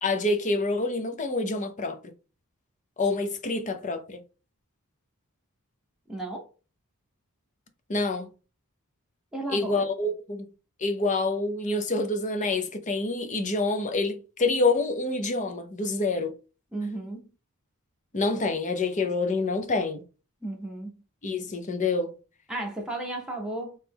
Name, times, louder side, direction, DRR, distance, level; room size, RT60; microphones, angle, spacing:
voice 1, 0.0-2.0 3.0-4.2 7.9-8.3 9.5-10.5 10.8-16.3 18.1-20.0 21.2-22.1, left 3 dB, 35° left, 0.7 m, -27 dB
voice 2, 6.1-6.5 9.3-9.8 16.7-17.2 20.4-20.9 22.5-23.8, right 2 dB, 5° right, 0.8 m, -34 dB
3.3 x 2.9 x 3.5 m
head